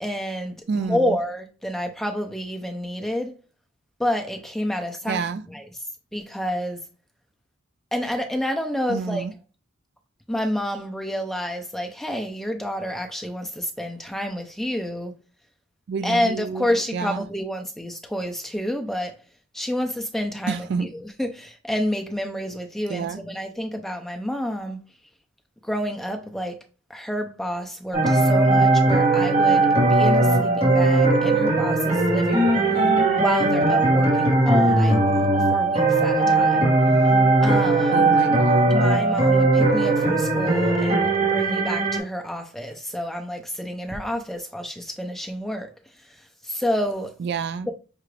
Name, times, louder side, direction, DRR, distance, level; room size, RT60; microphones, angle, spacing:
voice 1, 0.0-3.3 4.0-5.2 5.5-5.6 6.1-6.8 7.9-9.2 10.3-15.1 16.0-19.2 19.5-24.9 25.6-26.6 26.9-32.8 33.2-36.7 37.4-38.1 38.7-45.7 46.0-47.2 47.7-47.8, equal, ahead, 0.5 m, -29 dB
voice 2, 0.7-1.2 5.1-5.4 8.9-9.3 15.9-16.7 16.9-17.3 20.5-20.9 22.9-23.2 32.7-33.0 37.9-38.8 47.2-47.7, right 5 dB, 50° right, 0.3 m, -28 dB
Spooky Place, 27.9-42.0, right 2 dB, 30° right, 1.3 m, -19 dB
5.8 x 2.4 x 3.2 m
head